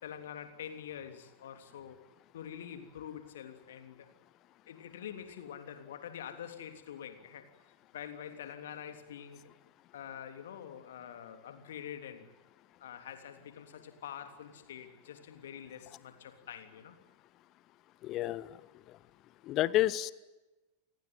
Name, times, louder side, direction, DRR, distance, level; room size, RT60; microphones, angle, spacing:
voice 1, 0.0-2.0 2.3-4.1 4.7-7.5 7.9-9.5 9.9-12.3 12.8-17.0, left 9 dB, 60° left, 9 dB, 3.2 m, -46 dB
voice 2, 18.0-19.0 19.4-20.1, left 15 dB, 35° left, 20 dB, 1.0 m, -31 dB
29.0 x 19.0 x 9.2 m, 1.1 s
figure-of-eight pair, 90°, 0 cm